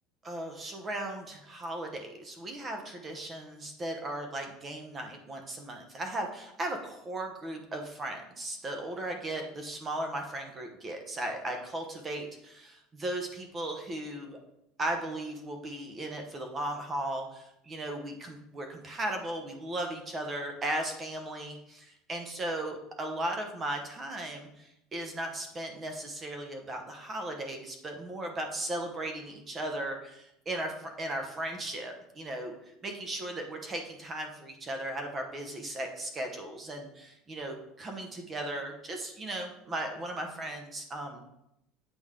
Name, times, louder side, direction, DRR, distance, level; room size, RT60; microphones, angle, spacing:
voice 1, 0.2-14.4 14.8-32.5 32.8-41.2, right 1 dB, 20° right, 4 dB, 0.9 m, -36 dB
8.5 x 5.1 x 3.7 m, 0.81 s
cardioid pair, 160°, 0 cm